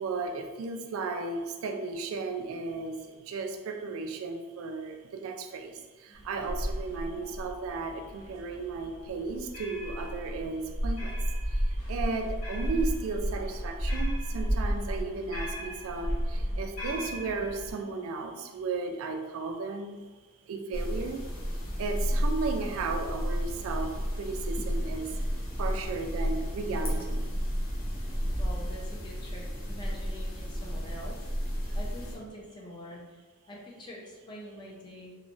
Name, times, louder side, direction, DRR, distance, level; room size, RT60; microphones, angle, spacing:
voice 1, 0.0-11.2 11.5-20.0 20.5-21.3 21.8-25.1 25.6-27.2, right 4 dB, 70° right, 5 dB, 0.3 m, -35 dB
sound 1, 6.2-17.7, equal, 45° left, 1.1 m, -33 dB
sound 2, 20.7-32.2, equal, 65° left, 0.8 m, -32 dB
voice 2, 28.4-33.2 33.5-35.1, equal, 20° left, -3 dB, 0.5 m, -45 dB
3.1 x 2.2 x 2.5 m, 1.3 s
head